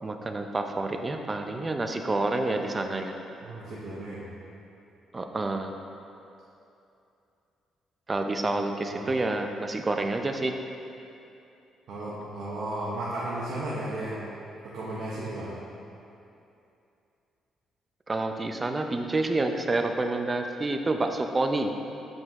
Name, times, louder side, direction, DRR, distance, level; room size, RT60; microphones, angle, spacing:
voice 1, 0.0-3.1 5.1-5.7 8.1-10.6 18.1-21.7, right 2 dB, 25° right, 5 dB, 0.5 m, -28 dB
voice 2, 3.4-4.2 8.9-9.1 11.9-14.2 14.6-15.5, right 1 dB, 65° right, -7 dB, 1.1 m, -34 dB
7.6 x 5.2 x 3.6 m, 2.7 s
cardioid pair, 90°, 0 cm